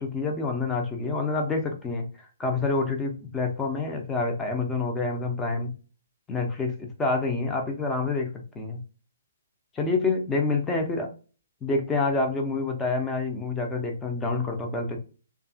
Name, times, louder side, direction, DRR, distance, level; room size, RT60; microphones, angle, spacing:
voice 1, 0.0-5.7 6.3-8.8 9.7-11.1 11.6-15.0, left 3 dB, 10° left, 2 dB, 0.6 m, -27 dB
2.7 x 2.4 x 2.6 m, 0.36 s
figure-of-eight pair, 130°, 0 cm